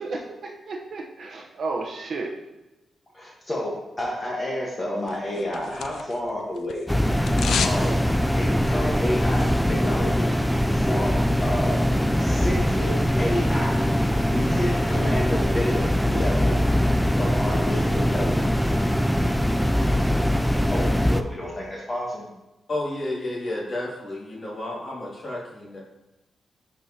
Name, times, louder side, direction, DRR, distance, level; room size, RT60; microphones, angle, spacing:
voice 1, 0.0-2.3, right 3 dB, 55° right, 2 dB, 0.8 m, -32 dB
voice 2, 3.1-6.9 7.6-8.0 8.3-10.3 10.7-11.8 12.2-13.8 14.3-16.6 17.2-18.7 20.7-22.4, left 1 dB, 25° left, -4 dB, 1.2 m, -30 dB
sound 1, 5.1-6.3 6.6-7.8 8.1-8.2, left 7 dB, 80° left, 0.4 m, -29 dB
sound 2, 6.9-21.2, equal, ahead, 0.3 m, -22 dB
voice 3, 22.7-25.8, left 1 dB, 40° left, -5 dB, 2.4 m, -31 dB
11.5 x 4.7 x 2.8 m, 1.0 s
wide cardioid pair, 125°, 0 cm